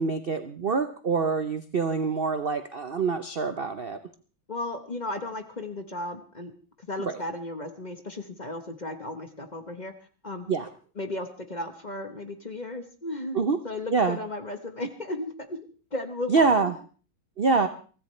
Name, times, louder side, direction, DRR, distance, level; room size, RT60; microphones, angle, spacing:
voice 1, 0.0-4.0 7.0-7.2 10.5-10.7 13.3-13.6 13.9-14.2 16.3-16.7 17.4-17.7, right 4 dB, 85° right, 9 dB, 0.5 m, -25 dB
voice 2, 4.5-6.5 6.8-9.9 10.2-10.5 11.0-15.6 15.9-16.7, left 2 dB, 30° left, 7 dB, 0.9 m, -35 dB
23.5 x 14.5 x 3.2 m, 0.39 s
omnidirectional pair, 2.1 m